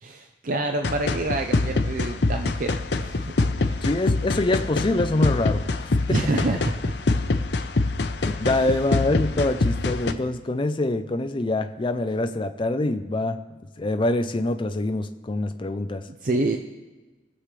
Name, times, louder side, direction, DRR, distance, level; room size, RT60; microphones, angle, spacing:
voice 1, 0.0-2.7 3.0-3.3 3.6-3.9 6.1-6.9 8.5-8.7 16.2-16.6, right 2 dB, 50° right, 4 dB, 0.6 m, -27 dB
sound 1, 0.8-10.1, left 3 dB, 70° left, 0.7 m, -25 dB
voice 2, 3.8-6.5 8.2-13.4 13.8-16.0, left 2 dB, 30° left, 8 dB, 0.5 m, -25 dB
22.0 x 7.5 x 3.3 m, 1.2 s
head